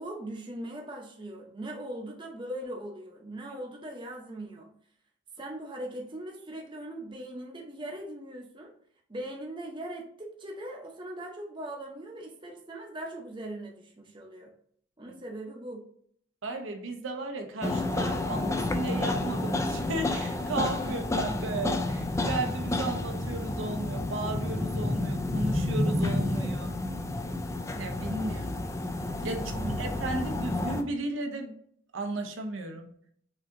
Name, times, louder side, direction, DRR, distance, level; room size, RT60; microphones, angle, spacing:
voice 1, 0.0-4.7 5.4-8.7 9.1-14.5 15.0-15.8 20.8-21.0 21.5-21.6 29.3-30.2, right 1 dB, 25° right, 1 dB, 0.7 m, -40 dB
voice 2, 16.4-26.8 27.8-28.7 29.2-31.5 31.9-32.9, right 2 dB, 75° right, 4 dB, 0.7 m, -34 dB
sound 1, 17.6-30.8, left 2 dB, 15° left, 0.3 m, -30 dB
5.9 x 2.7 x 2.6 m, 0.63 s
head